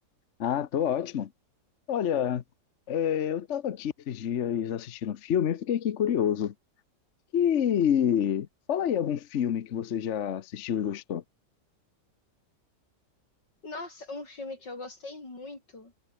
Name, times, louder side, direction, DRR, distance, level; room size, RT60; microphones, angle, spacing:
voice 1, 0.4-1.3 1.9-2.4 2.9-6.5 7.3-11.2, left 9 dB, 50° left, 1.0 m, -28 dB
voice 2, 13.6-15.9, left 2 dB, 85° left, 6.6 m, -40 dB
omnidirectional pair, 1.9 m